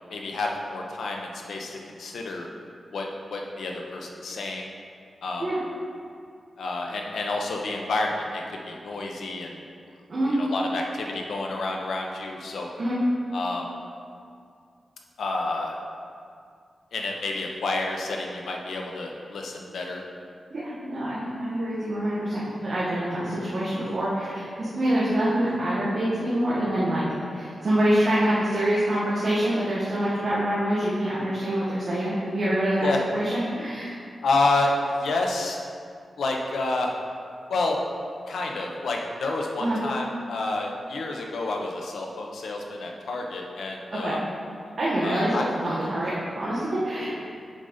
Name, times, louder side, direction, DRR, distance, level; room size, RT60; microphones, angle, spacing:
voice 1, 0.1-2.5 2.9-4.7 5.2-5.4 6.6-9.5 10.4-12.7 13.3-13.7 15.2-15.8 16.9-20.0 32.8-33.0 34.2-35.6 36.2-36.9 37.5-37.8 38.3-44.2 45.0-45.4, left 2 dB, 90° left, 1 dB, 0.8 m, -29 dB
voice 2, 20.5-34.0 39.6-39.8 43.9-44.2 44.8-47.1, right 1 dB, 45° right, -9 dB, 1.3 m, -26 dB
7.4 x 4.1 x 5.1 m, 2.3 s
wide cardioid pair, 155°, 0 cm